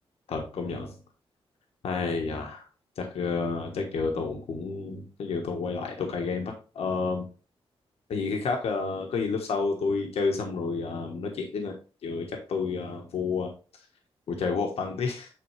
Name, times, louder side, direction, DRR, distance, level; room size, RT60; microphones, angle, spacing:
voice 1, 0.3-1.0 1.8-2.7 3.0-7.3 8.1-11.7 12.0-13.5 14.3-15.3, left 4 dB, 85° left, 2 dB, 1.3 m, -30 dB
9.2 x 4.2 x 3.3 m, 0.35 s
wide cardioid pair, 165°, 10 cm